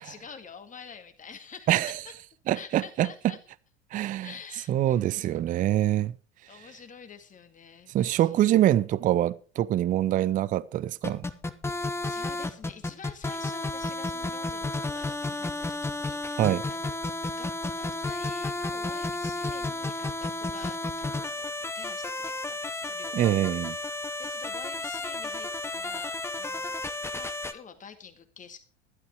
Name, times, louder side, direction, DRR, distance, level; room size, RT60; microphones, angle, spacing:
voice 1, 0.0-2.1 2.5-3.4 4.2-5.5 6.5-8.3 11.7-17.0 17.4-23.3 23.6-23.9 24.2-28.6, left 6 dB, 20° left, 2.0 m, -48 dB
voice 2, 2.5-3.1 3.9-4.3 4.7-6.1 7.9-11.2 16.4-16.6 23.1-23.8, right 13 dB, 25° right, 0.5 m, -24 dB
sound 1, 11.0-27.5, left 2 dB, 5° left, 0.9 m, -32 dB
12.0 x 11.5 x 4.7 m
figure-of-eight pair, 75°, 35 cm